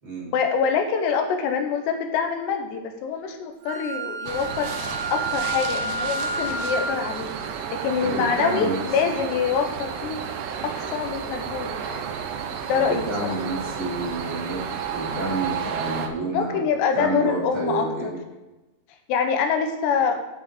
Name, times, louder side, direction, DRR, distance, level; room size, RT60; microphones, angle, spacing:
voice 1, 0.3-7.3 7.7-10.2 10.6-12.0 12.7-13.1 16.3-18.1 19.1-20.2, left 6 dB, 90° left, 5 dB, 3.2 m, -25 dB
Wind instrument woodwind instrument, 3.7-7.0, right 2 dB, 60° right, 2.4 m, -30 dB
sound 1, 4.3-16.1, right 7 dB, 85° right, 1.8 m, -32 dB
voice 2, 8.0-8.8 12.7-14.6 14.9-16.6 16.9-18.2, right 2 dB, 30° right, -6 dB, 3.4 m, -29 dB
8.3 x 7.1 x 5.0 m, 1.1 s
omnidirectional pair, 4.8 m